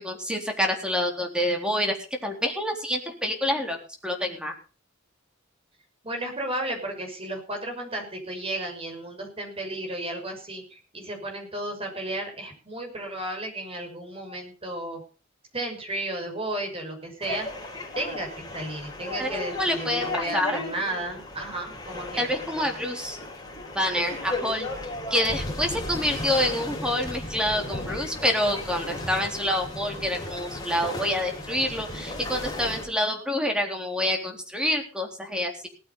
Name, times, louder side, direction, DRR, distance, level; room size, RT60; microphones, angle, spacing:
voice 1, 0.0-2.0 2.2-3.8 4.0-4.5 19.2-20.6 22.2-23.2 23.7-24.7 25.1-35.7, left 1 dB, 5° right, 3 dB, 3.7 m, -27 dB
voice 2, 6.0-15.0 15.5-17.5 17.9-22.3, right 1 dB, 30° right, 3 dB, 6.4 m, -33 dB
sound 1, 17.2-32.9, left 2 dB, 20° left, 4.8 m, -35 dB
18.5 x 8.9 x 5.5 m, 0.36 s
head